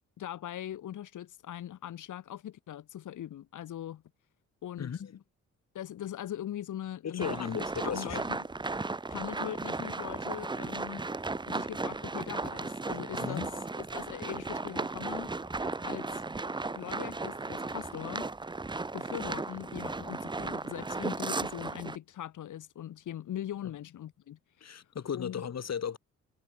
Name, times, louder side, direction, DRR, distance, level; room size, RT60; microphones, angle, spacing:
voice 1, 0.2-4.0 4.6-5.0 5.7-7.5 7.8-8.4 9.1-11.0 11.4-15.3 15.8-16.2 16.7-18.3 18.9-24.9 25.1-25.4, left 11 dB, 85° left, 3.5 m, -41 dB
voice 2, 4.8-5.2 7.0-8.2 13.2-13.5 24.6-26.0, left 7 dB, 60° left, 4.7 m, -36 dB
sound 1, 7.2-22.0, right 3 dB, 15° right, 0.7 m, -35 dB
cardioid pair, 80°, 30 cm